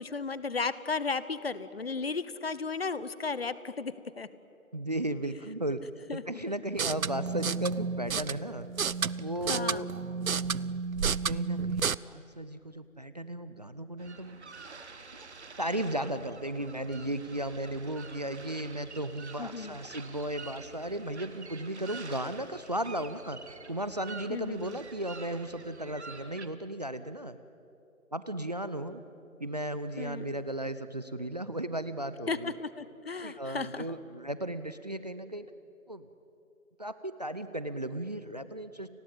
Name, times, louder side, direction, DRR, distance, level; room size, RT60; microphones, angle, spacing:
voice 1, 0.0-4.3 6.1-6.2 9.5-9.8 19.4-19.8 24.3-24.8 30.0-30.4 32.3-33.8, left 4 dB, 45° left, 16 dB, 1.0 m, -34 dB
voice 2, 4.7-5.8 6.1-8.7 9.2-9.9 11.3-14.4 15.6-27.4 28.1-29.0 29.4-32.5 33.2-35.5 35.9-36.1 36.8-38.9, right 1 dB, 30° right, 12 dB, 0.6 m, -35 dB
sound 1, 6.7-11.9, right 6 dB, 75° right, 0.7 m, -32 dB
sound 2, 14.0-26.5, right 4 dB, 50° right, 1.9 m, -48 dB
30.0 x 20.0 x 8.8 m, 2.8 s
figure-of-eight pair, 155°, 43 cm